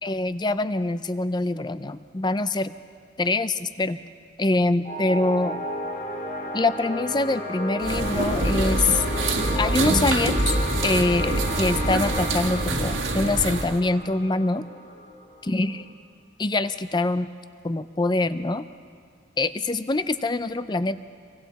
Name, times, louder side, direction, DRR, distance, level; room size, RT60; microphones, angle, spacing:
voice 1, 0.0-2.7 3.2-4.0 4.4-5.6 6.5-9.0 9.6-10.4 10.8-14.7 15.4-15.8 16.4-17.3 17.6-18.7 19.4-21.0, left 2 dB, 20° left, 13 dB, 0.5 m, -24 dB
sound 1, 4.8-15.9, left 1 dB, 40° left, 2.7 m, -33 dB
sound 2, 7.8-13.8, right 2 dB, 85° right, 1.8 m, -25 dB
27.0 x 23.5 x 4.2 m, 2.2 s
head